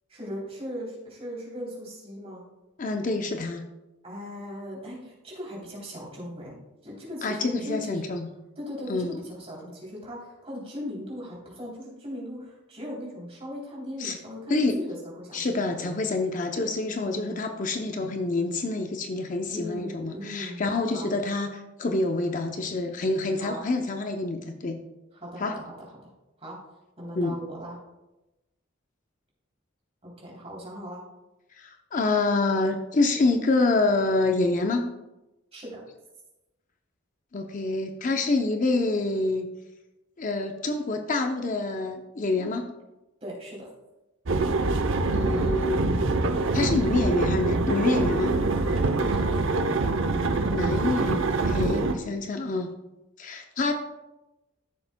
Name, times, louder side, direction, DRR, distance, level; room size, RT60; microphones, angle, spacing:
voice 1, 0.1-2.4 4.0-6.5 6.8-8.0 8.6-15.9 17.0-17.4 19.5-21.1 23.4-23.6 25.1-25.9 26.4-26.6 27.0-27.8 30.0-31.0 35.5-35.8 43.2-43.7 49.0-49.6, equal, 30° right, -4 dB, 3.1 m, -38 dB
voice 2, 2.8-3.6 7.2-8.3 8.9-9.2 14.0-14.2 14.5-14.8 15.3-24.8 25.4-25.6 27.1-27.3 31.6-34.9 37.3-39.5 40.2-42.7 45.1-46.0 46.5-48.3 50.5-52.7 53.2-53.7, left 3 dB, 40° left, 5 dB, 0.6 m, -27 dB
sound 1, 44.3-51.9, right 3 dB, 75° right, 0.7 m, -25 dB
14.0 x 7.1 x 2.2 m, 0.98 s
head